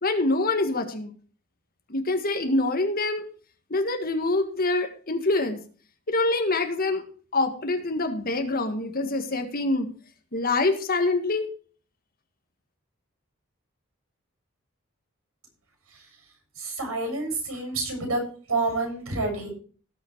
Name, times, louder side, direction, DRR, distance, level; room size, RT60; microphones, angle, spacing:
voice 1, 0.0-1.1 1.9-3.2 3.7-5.6 6.1-7.0 7.3-9.9 10.3-11.5, left 2 dB, 45° left, 6 dB, 1.7 m, -25 dB
voice 2, 16.6-18.2 18.5-19.5, right 2 dB, 90° right, 2 dB, 7.1 m, -28 dB
17.5 x 6.1 x 4.6 m, 0.42 s
head